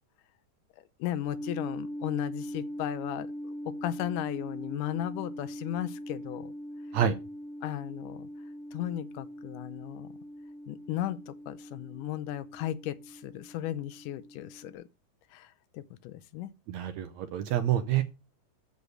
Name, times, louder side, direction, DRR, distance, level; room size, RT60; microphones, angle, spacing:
voice 1, 1.0-6.5 7.6-8.3 8.7-10.1 10.7-14.8 15.3-16.5, left 13 dB, 80° left, 2.2 m, -36 dB
sound 1, 1.2-14.7, equal, 50° right, 3.9 m, -41 dB
voice 2, 16.7-18.0, right 10 dB, 75° right, 1.7 m, -27 dB
8.1 x 7.0 x 6.4 m
omnidirectional pair, 3.8 m